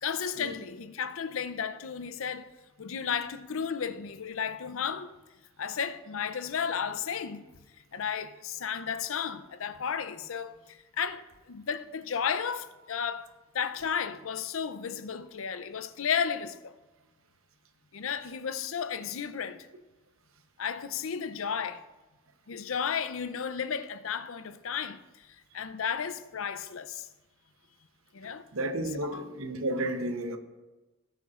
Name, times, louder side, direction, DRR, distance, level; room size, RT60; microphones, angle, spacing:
voice 1, 0.0-2.5 2.8-5.2 5.6-7.4 7.9-13.3 13.5-16.8 17.9-19.7 20.6-21.8 22.5-25.3 25.5-27.1 28.1-28.4 29.1-29.3, left 7 dB, 75° left, 0.6 m, -33 dB
voice 2, 28.5-30.4, right 1 dB, 80° right, 0.9 m, -32 dB
18.5 x 8.2 x 2.5 m
head